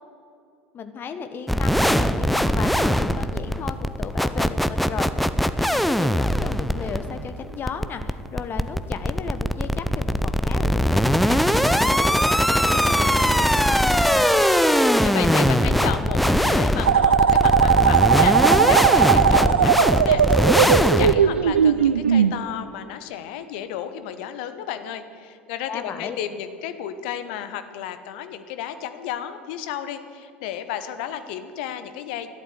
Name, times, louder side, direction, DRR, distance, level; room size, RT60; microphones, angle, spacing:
voice 1, 0.7-5.3 5.6-11.6 12.0-14.5 25.7-26.2, left 6 dB, 35° left, 9 dB, 1.4 m, -35 dB
sound 1, 1.5-21.1, equal, ahead, 0.7 m, -20 dB
voice 2, 15.0-32.3, left 10 dB, 60° left, 10 dB, 1.1 m, -32 dB
sound 2, 16.9-22.3, right 7 dB, 80° right, 0.4 m, -18 dB
13.0 x 11.5 x 7.9 m, 2.6 s
figure-of-eight pair, 70°, 6 cm